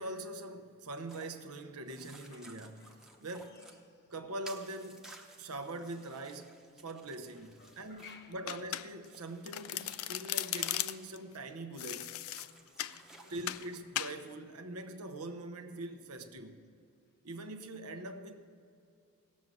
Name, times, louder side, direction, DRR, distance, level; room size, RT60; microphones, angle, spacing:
voice 1, 0.0-3.7 4.1-5.0 5.4-6.6 6.8-12.1 13.3-16.6 17.2-18.4, right 2 dB, 85° right, 0.9 m, -43 dB
sound 1, 1.1-1.4 1.9-3.8 4.4-8.3 9.1-11.1 12.1-13.8, right 1 dB, ahead, 0.8 m, -56 dB
voice 2, 2.3-4.1 7.4-8.4 12.7-13.5 16.0-16.1, left 5 dB, 50° left, 1.0 m, -59 dB
Domestic sounds home sounds, 8.5-9.2 9.5-11.2 11.8-13.0 13.5-13.7 14.0-14.2, left 13 dB, 70° left, 0.4 m, -37 dB
17.5 x 7.5 x 6.5 m
head